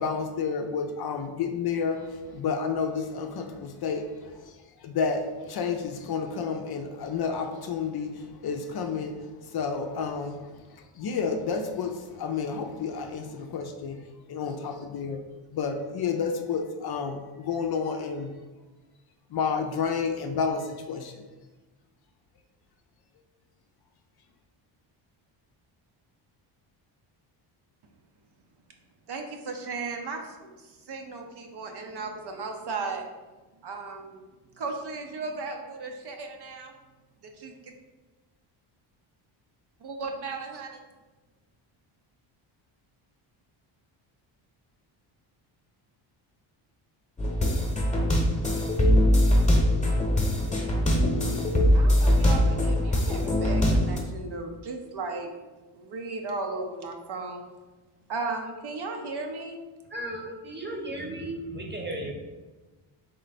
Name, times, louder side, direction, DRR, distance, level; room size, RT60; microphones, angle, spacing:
voice 1, 0.0-4.5 4.8-10.4 10.7-14.0 14.3-15.2 15.5-18.3 19.3-21.1, left 5 dB, 50° left, 5 dB, 0.5 m, -30 dB
voice 2, 29.1-33.0 33.6-34.2 34.6-36.7 37.2-37.7 39.8-40.8 51.7-55.3 55.7-57.4 58.1-59.6, right 3 dB, 55° right, 3 dB, 0.8 m, -36 dB
sound 1, 47.2-54.0, equal, 15° left, 1.0 m, -22 dB
voice 3, 59.9-62.1, right 1 dB, 20° right, 1 dB, 0.9 m, -35 dB
3.8 x 3.2 x 4.1 m, 1.2 s
cardioid pair, 90°, 50 cm